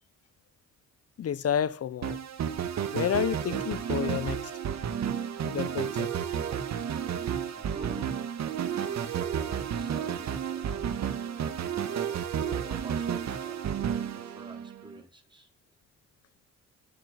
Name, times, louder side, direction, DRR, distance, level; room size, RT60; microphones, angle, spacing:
voice 1, 1.2-2.2 2.9-4.5 5.4-6.1, left 9 dB, 50° left, 1.0 m, -30 dB
sound 1, 2.0-14.9, right 8 dB, 60° right, 2.5 m, -32 dB
voice 2, 7.5-8.1 8.7-10.7 11.9-15.5, right 2 dB, 15° right, 4.4 m, -48 dB
23.0 x 8.1 x 5.8 m
cardioid pair, 90°, 30 cm